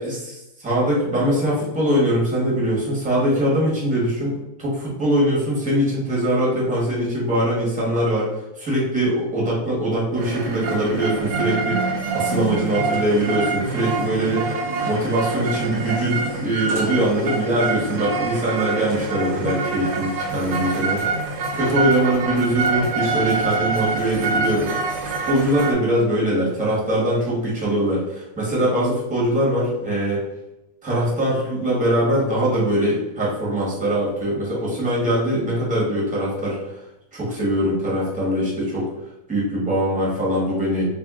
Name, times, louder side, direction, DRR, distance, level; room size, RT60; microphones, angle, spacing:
voice 1, 0.6-14.5 14.9-21.0 21.5-30.2 30.8-36.8 37.1-38.9 39.3-40.9, right 1 dB, 5° right, -6 dB, 0.8 m, -22 dB
sound 1, 10.2-25.7, right 3 dB, 75° right, 1.1 m, -26 dB
2.7 x 2.6 x 3.6 m, 0.92 s
omnidirectional pair, 1.9 m